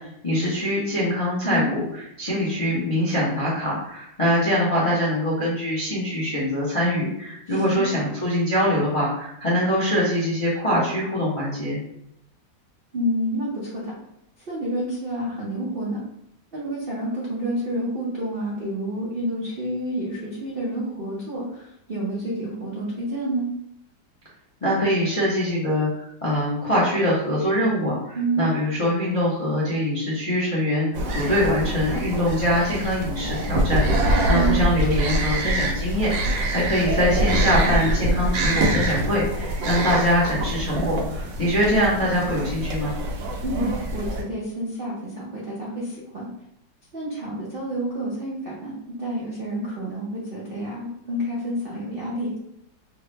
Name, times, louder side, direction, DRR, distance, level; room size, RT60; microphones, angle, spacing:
voice 1, 0.2-11.8 24.6-42.9, equal, 50° left, -7 dB, 0.4 m, -23 dB
voice 2, 7.5-7.9 12.9-13.9 14.5-16.0 16.5-23.4 28.1-28.5 34.3-34.6 43.4-46.3 46.9-48.7 49.0-52.3, right 1 dB, 75° right, -5 dB, 0.5 m, -29 dB
sound 1, 30.9-44.2, right 1 dB, 90° right, 1.3 m, -25 dB
3.4 x 2.0 x 3.2 m, 0.78 s
omnidirectional pair, 1.9 m